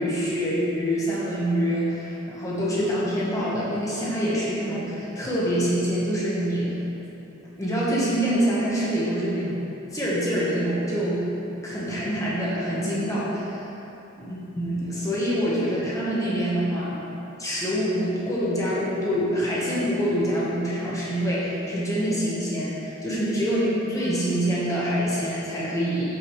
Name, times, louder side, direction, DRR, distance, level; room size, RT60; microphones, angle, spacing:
voice 1, 0.0-6.8 7.4-9.6 9.9-11.3 11.6-13.6 14.2-17.0 17.4-26.2, equal, 15° left, -8 dB, 1.4 m, -25 dB
7.1 x 6.0 x 3.3 m, 2.9 s
head